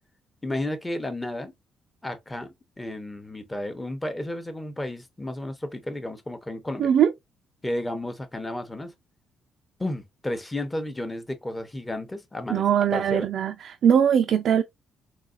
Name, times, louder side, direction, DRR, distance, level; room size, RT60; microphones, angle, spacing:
voice 1, 0.4-1.5 2.0-6.9 7.6-8.9 9.8-12.7 12.9-13.3, left 1 dB, 15° left, 0.8 m, -32 dB
voice 2, 6.8-7.1 12.5-14.6, right 8 dB, 65° right, 0.4 m, -21 dB
4.0 x 2.4 x 2.4 m
cardioid pair, 90°, 0 cm